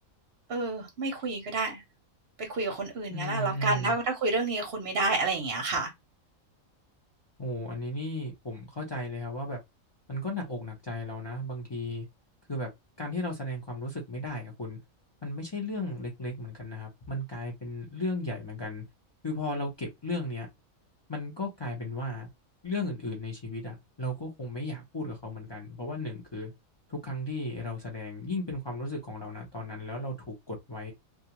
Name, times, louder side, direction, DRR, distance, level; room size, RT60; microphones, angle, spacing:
voice 1, 0.5-1.8 2.4-5.9, right 3 dB, 55° right, 0.7 m, -29 dB
voice 2, 3.1-4.0 7.4-9.6 10.1-12.1 12.5-12.7 13.0-14.8 15.2-18.8 19.2-20.5 21.1-22.3 22.6-26.5 26.9-30.9, left 1 dB, 40° left, 0.4 m, -35 dB
2.4 x 2.3 x 2.8 m
omnidirectional pair, 1.5 m